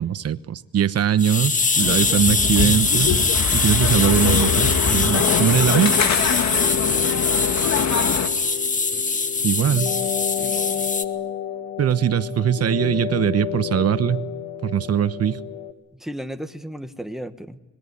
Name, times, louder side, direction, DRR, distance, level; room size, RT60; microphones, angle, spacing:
voice 1, 0.0-3.2 3.5-5.9 9.4-9.9 11.8-14.2 14.6-15.4, right 9 dB, 55° right, 1.1 m, -21 dB
sound 1, 1.2-11.0, left 4 dB, 25° left, 1.6 m, -22 dB
sound 2, 1.8-8.3, left 6 dB, 60° left, 2.2 m, -24 dB
sound 3, 3.7-15.7, left 10 dB, 90° left, 1.6 m, -30 dB
voice 2, 6.8-8.2 10.4-10.9 15.9-17.6, equal, ahead, 1.6 m, -36 dB
26.0 x 21.5 x 9.9 m
cardioid pair, 90°, 30 cm